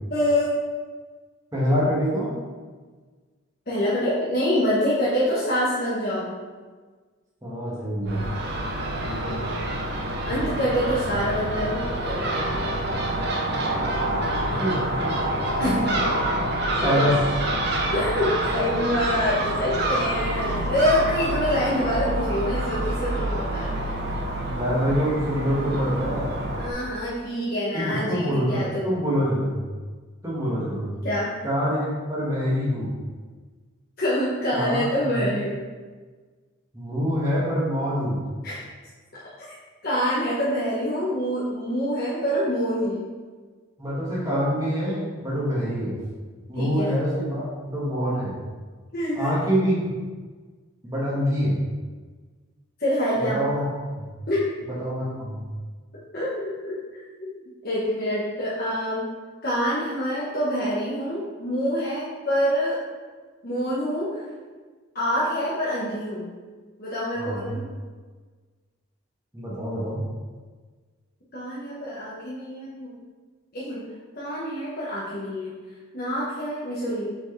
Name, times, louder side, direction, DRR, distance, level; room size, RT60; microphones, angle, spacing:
voice 1, 0.1-0.5 3.7-6.3 10.2-12.6 15.6-15.8 16.8-17.0 17.9-23.9 26.5-28.9 31.0-31.3 34.0-35.6 38.4-38.6 39.8-43.0 46.5-46.9 48.9-49.3 52.8-53.4 54.3-54.4 56.1-56.8 57.2-57.3 57.6-59.0 59.4-62.8 63.4-64.2 64.9-66.3 66.8-67.7 71.3-72.9 73.5-73.8 74.2-75.5 75.9-77.1, equal, 45° left, -8 dB, 1.2 m, -26 dB
voice 2, 1.5-2.3 7.4-8.3 9.0-9.4 14.5-15.2 15.6-16.0 16.8-17.2 24.4-26.4 27.7-29.6 30.2-30.9 31.4-32.9 34.5-34.8 35.1-35.3 36.7-38.2 43.8-45.9 46.5-48.4 49.1-49.8 50.8-51.6 53.3-53.7 54.0-54.1 54.8-55.4 67.2-67.5 69.3-70.0, equal, 15° right, -8 dB, 1.7 m, -25 dB
Crow / Gull seagull, 8.1-26.7, right 1 dB, 50° right, 0.9 m, -27 dB
7.4 x 4.7 x 3.3 m, 1.4 s
head